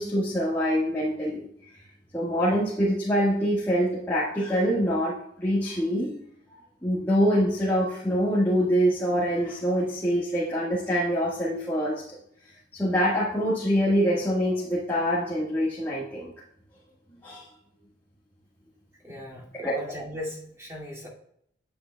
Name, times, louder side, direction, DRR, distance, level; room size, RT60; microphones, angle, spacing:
voice 1, 0.0-1.4 2.1-6.1 6.8-12.0 12.7-16.3 17.2-17.4 19.6-19.8, equal, 10° left, -8 dB, 1.6 m, -25 dB
voice 2, 19.0-21.1, left 1 dB, 15° right, -5 dB, 2.4 m, -38 dB
9.6 x 9.5 x 2.3 m, 0.69 s
head